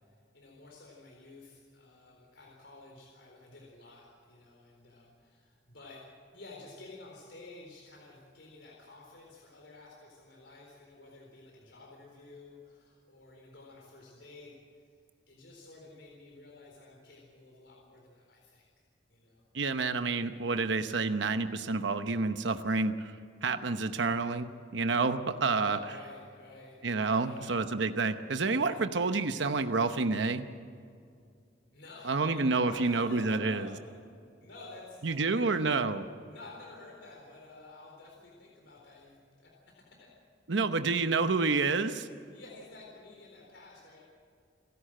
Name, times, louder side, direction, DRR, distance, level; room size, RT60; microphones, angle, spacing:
voice 1, 0.3-6.0 6.3-14.5 15.3-18.7 19.1-19.4 25.6-26.8 27.2-27.6 31.7-34.0 34.4-35.8 36.3-39.5 39.9-40.1 42.3-44.0, left 2 dB, 70° left, -2 dB, 4.1 m, -51 dB
voice 2, 19.5-23.1 23.4-25.8 26.8-30.5 32.1-33.7 35.0-36.0 40.5-42.1, right 3 dB, 70° right, 9 dB, 0.9 m, -29 dB
29.5 x 11.5 x 7.6 m, 2.3 s
head